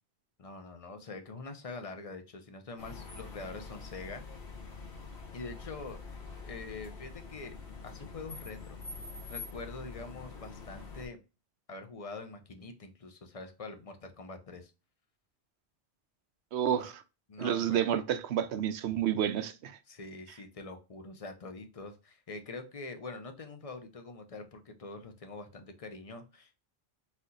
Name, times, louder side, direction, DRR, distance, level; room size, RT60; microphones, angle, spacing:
voice 1, 0.4-4.2 5.3-7.6 7.8-8.8 9.3-11.2 11.7-14.7 16.8-16.9 17.3-17.8 19.9-26.6, left 3 dB, 40° left, 0.7 m, -44 dB
sound 1, 2.8-11.1, left 4 dB, 60° left, 1.3 m, -45 dB
voice 2, 16.5-17.0 17.4-19.8, right 10 dB, 85° right, 0.9 m, -30 dB
4.2 x 2.8 x 3.9 m
omnidirectional pair, 1.1 m